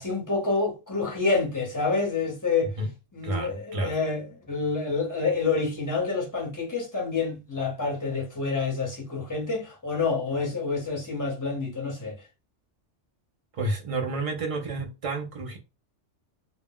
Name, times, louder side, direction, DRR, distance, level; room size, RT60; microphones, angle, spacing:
voice 1, 0.0-2.7 3.1-12.2, left 4 dB, 20° left, 0.7 m, -28 dB
voice 2, 3.2-3.9 13.5-15.6, right 2 dB, 50° right, 0.4 m, -30 dB
2.3 x 2.1 x 3.5 m
omnidirectional pair, 1.2 m